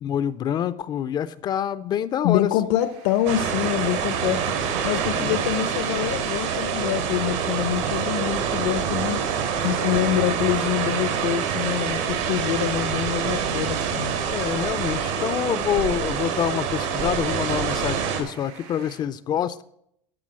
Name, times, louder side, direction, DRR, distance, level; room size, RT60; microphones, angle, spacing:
voice 1, 0.0-2.5 5.1-5.4 14.3-19.6, left 9 dB, 30° left, 15 dB, 0.4 m, -26 dB
voice 2, 2.2-4.4 4.8-9.2 9.6-14.1, left 13 dB, 80° left, 12 dB, 0.7 m, -25 dB
sound 1, 2.8-19.0, right 7 dB, 75° right, 4.0 m, -44 dB
sound 2, 3.3-18.2, right 7 dB, 90° right, 3.7 m, -26 dB
12.5 x 6.2 x 7.4 m, 0.73 s
cardioid pair, 160°, 16 cm